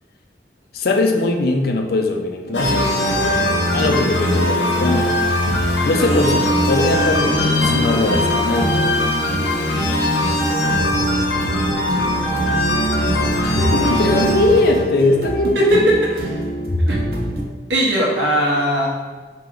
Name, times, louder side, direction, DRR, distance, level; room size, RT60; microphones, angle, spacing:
voice 1, 0.7-3.3 3.7-5.2 5.8-8.8 13.4-15.9 16.7-16.8, left 2 dB, 60° left, 3 dB, 0.5 m, -20 dB
sound 1, 2.5-14.8, left 1 dB, 85° left, 0.8 m, -20 dB
sound 2, 2.5-17.4, right 1 dB, 60° right, 0.6 m, -26 dB
voice 2, 12.3-12.6 15.5-16.1 16.9-17.0 17.7-18.9, right 1 dB, 90° right, -3 dB, 1.2 m, -19 dB
4.5 x 2.9 x 3.8 m, 1.4 s
head